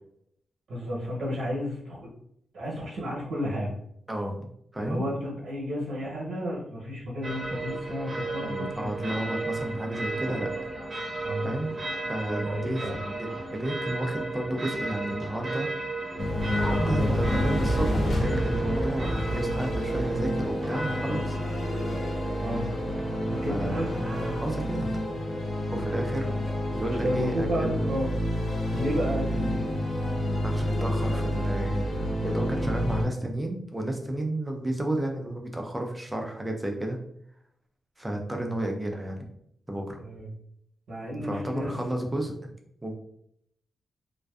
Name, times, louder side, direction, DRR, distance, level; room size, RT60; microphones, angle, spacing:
voice 1, 0.7-2.1 2.5-3.7 4.8-8.9 11.2-11.5 12.2-13.0 22.4-22.6 23.2-23.9 26.3-26.4 26.9-28.1 28.7-29.6 40.0-40.3 40.9-41.7, equal, 80° right, -5 dB, 0.8 m, -32 dB
voice 2, 4.1-4.5 4.7-5.0 8.4-10.5 11.4-11.7 12.1-15.7 16.1-16.2 16.6-21.4 23.5-23.8 24.4-24.9 25.7-26.3 26.7-27.8 30.4-31.9 32.2-37.0 38.0-39.3 39.7-40.0 41.2-42.3 42.8-42.9, right 1 dB, 10° right, 2 dB, 0.4 m, -32 dB
sound 1, 7.2-24.4, right 2 dB, 35° right, 0.7 m, -35 dB
sound 2, 16.2-33.0, equal, 45° left, 0.5 m, -29 dB
2.5 x 2.2 x 2.2 m, 0.73 s
wide cardioid pair, 150°, 0 cm